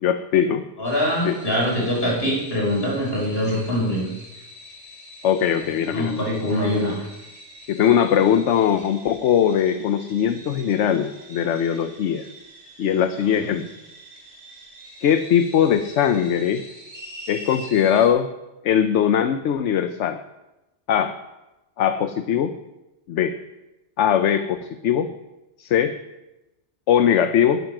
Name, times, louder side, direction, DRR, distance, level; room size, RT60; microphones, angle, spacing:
voice 1, 0.0-0.6 1.2-1.4 5.2-6.3 7.7-12.2 12.8-13.7 15.0-16.6 17.3-18.3 18.6-20.2 20.9-21.1 21.8-22.5 23.1-23.3 24.0-25.1 25.6-26.0 26.9-27.6, left 9 dB, 80° left, 9 dB, 1.0 m, -20 dB
voice 2, 0.8-4.0 5.9-7.0 13.3-13.5, equal, 55° left, -3 dB, 5.0 m, -23 dB
sound 1, 0.8-18.1, right 1 dB, 80° right, 3.6 m, -44 dB
12.0 x 9.7 x 6.0 m, 0.99 s
omnidirectional pair, 1.2 m